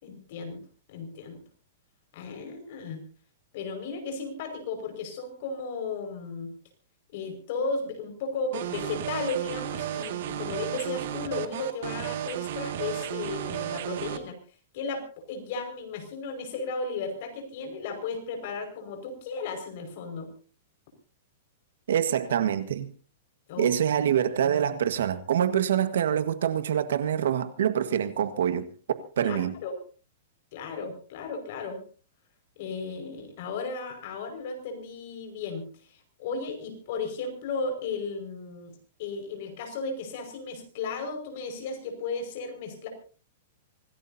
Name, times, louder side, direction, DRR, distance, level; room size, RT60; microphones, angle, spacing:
voice 1, 0.0-0.6 0.9-1.4 2.1-3.0 3.5-6.5 7.1-14.4 14.7-20.3 23.5-23.7 29.2-29.8 30.5-31.8 32.6-35.7 36.2-38.7 39.0-42.9, left 4 dB, 45° left, 5.4 m, -35 dB
sound 1, 8.5-14.2, right 11 dB, 55° right, 2.0 m, -33 dB
voice 2, 21.9-22.9 23.6-28.7 29.2-29.6, right 9 dB, 80° right, 1.6 m, -25 dB
25.5 x 17.0 x 2.8 m
supercardioid pair, 165°, 0 cm